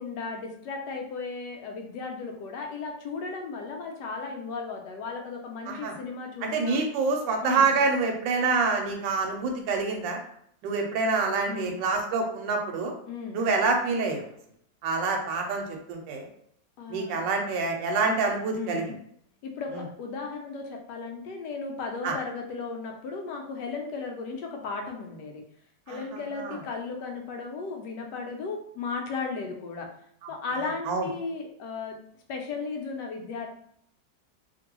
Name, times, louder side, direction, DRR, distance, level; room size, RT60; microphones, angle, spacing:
voice 1, 0.0-6.8 7.4-7.8 11.5-11.9 13.1-13.5 16.8-17.2 18.5-18.9 19.4-25.4 25.9-29.9 30.3-32.0 32.3-33.5, left 4 dB, 75° left, 3 dB, 1.2 m, -35 dB
voice 2, 6.4-10.2 10.6-12.9 13.3-14.2 14.8-16.3 16.9-18.8 22.0-22.1 25.9-26.0 26.4-26.6 30.9-31.1, right 4 dB, 85° right, 2 dB, 1.3 m, -26 dB
2.9 x 2.5 x 2.9 m, 0.69 s
omnidirectional pair, 1.9 m